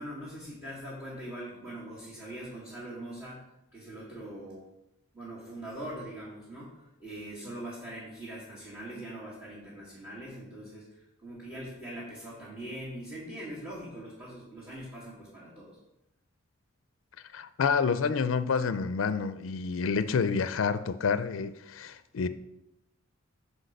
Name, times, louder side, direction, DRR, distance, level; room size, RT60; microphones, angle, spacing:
voice 1, 0.0-3.5 3.7-4.7 5.1-15.8, right 1 dB, 15° right, 2.1 m, -42 dB
voice 2, 17.3-22.3, left 5 dB, 75° left, 0.4 m, -28 dB
6.4 x 4.8 x 6.5 m
head